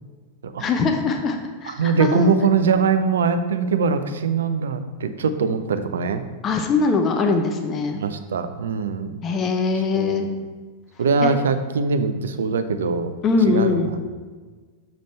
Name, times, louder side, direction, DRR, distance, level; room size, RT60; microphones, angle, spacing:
voice 1, 0.6-1.4 1.6-2.3 6.4-8.0 9.2-10.3 11.2-11.3 13.2-13.9, left 4 dB, 30° left, 4 dB, 0.7 m, -21 dB
voice 2, 1.7-6.2 7.9-9.2 9.9-10.4 11.0-13.2 13.5-14.0, right 5 dB, 65° right, 10 dB, 0.5 m, -22 dB
6.9 x 5.2 x 4.4 m, 1.4 s
figure-of-eight pair, 90°, 0 cm